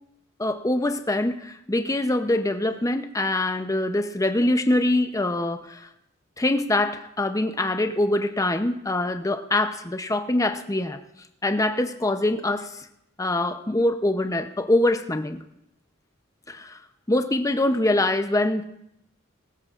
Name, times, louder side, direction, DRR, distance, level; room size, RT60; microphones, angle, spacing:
voice 1, 0.4-5.9 6.4-11.0 11.4-12.9 13.2-15.4 16.5-16.8 17.1-18.6, left 1 dB, 15° left, 8 dB, 0.6 m, -24 dB
22.5 x 14.5 x 2.5 m, 0.82 s
head